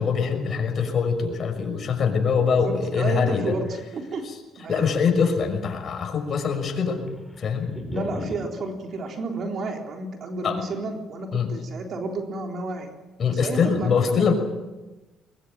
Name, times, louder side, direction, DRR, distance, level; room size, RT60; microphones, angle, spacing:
voice 1, 0.0-3.5 4.7-7.0 7.4-7.7 10.4-10.6 11.3-11.5 13.2-14.3, left 6 dB, 50° left, 5 dB, 6.0 m, -23 dB
voice 2, 2.6-4.2 4.6-5.0 7.9-12.9 13.3-14.3, right 3 dB, 50° right, 2 dB, 3.7 m, -31 dB
sound 1, 5.2-5.7 6.0-6.1 6.4-8.5, left 2 dB, 10° left, 4.7 m, -35 dB
22.0 x 22.0 x 9.1 m, 1.1 s
cardioid pair, 100°, 0 cm